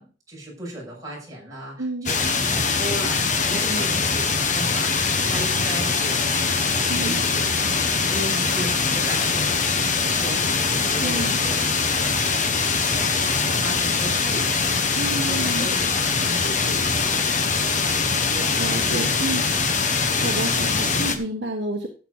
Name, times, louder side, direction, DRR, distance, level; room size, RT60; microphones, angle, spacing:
voice 1, 0.0-7.7 8.0-12.2 12.6-12.8 13.4-14.7 15.1-19.6 20.0-20.4 20.9-21.2, right 1 dB, 20° right, -4 dB, 6.4 m, -36 dB
voice 2, 1.8-2.1 6.9-7.2 11.0-11.4 15.0-15.7 18.6-19.4 20.1-21.9, right 2 dB, 60° right, 2 dB, 1.4 m, -29 dB
sound 1, 2.1-21.2, left 4 dB, 40° left, 1.2 m, -22 dB
13.0 x 8.2 x 4.0 m, 0.39 s
head